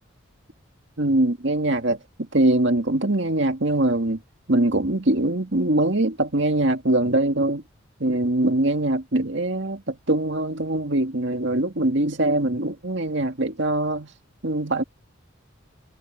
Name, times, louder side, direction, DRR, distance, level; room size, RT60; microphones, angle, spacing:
voice 1, 1.0-4.2 4.5-7.6 8.0-14.1 14.4-14.8, right 1 dB, 60° right, 2.1 m, -22 dB
head